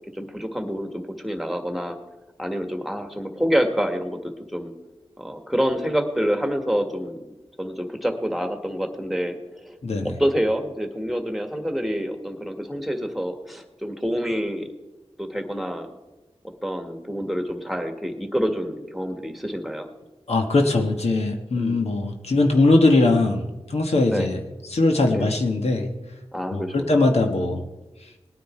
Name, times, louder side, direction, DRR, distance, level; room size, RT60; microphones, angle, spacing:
voice 1, 0.1-2.0 2.4-4.7 5.2-7.2 7.6-9.7 10.0-14.7 15.2-15.9 16.6-19.9 21.5-21.8 24.1-24.3 25.1-25.3 26.3-27.0 27.3-27.5, equal, ahead, 5 dB, 1.8 m, -27 dB
voice 2, 9.8-10.1 20.3-24.4 24.7-25.9 26.5-27.6, left 2 dB, 85° left, 3 dB, 1.5 m, -20 dB
19.0 x 9.5 x 4.5 m, 1.1 s
wide cardioid pair, 55°, 11 cm